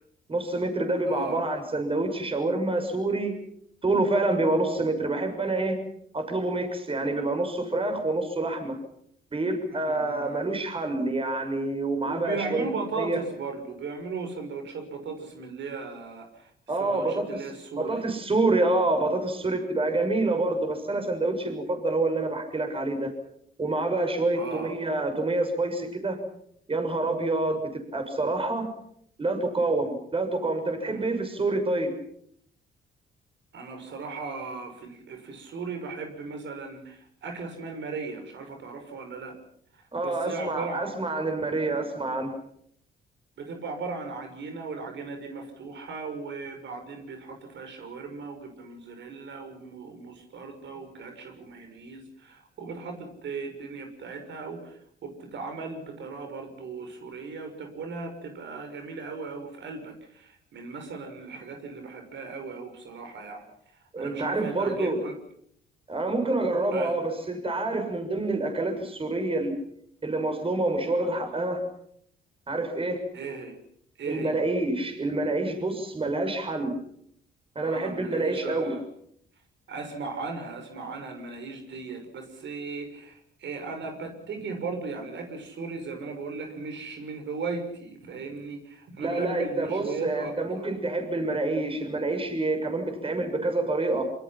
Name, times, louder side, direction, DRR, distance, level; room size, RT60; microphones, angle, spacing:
voice 1, 0.3-3.4 3.8-5.8 6.1-8.8 9.3-12.7 13.0-13.2 16.7-17.4 17.8-23.1 23.6-26.2 26.7-28.7 29.2-31.9 39.9-42.3 63.9-65.0 65.9-69.6 70.0-71.6 72.5-73.0 74.1-76.8 77.5-78.8 89.0-94.1, right 2 dB, 25° right, 6 dB, 6.7 m, -27 dB
voice 2, 1.1-1.5 9.9-10.5 12.0-16.5 16.8-18.2 24.3-24.7 30.9-31.1 33.5-39.3 39.7-41.0 43.4-63.4 64.0-65.1 66.7-66.9 73.1-73.6 74.0-74.4 77.6-78.8 79.7-90.7, right 4 dB, 65° right, 5 dB, 6.1 m, -37 dB
27.5 x 25.0 x 5.9 m, 0.67 s
cardioid pair, 90°, 20 cm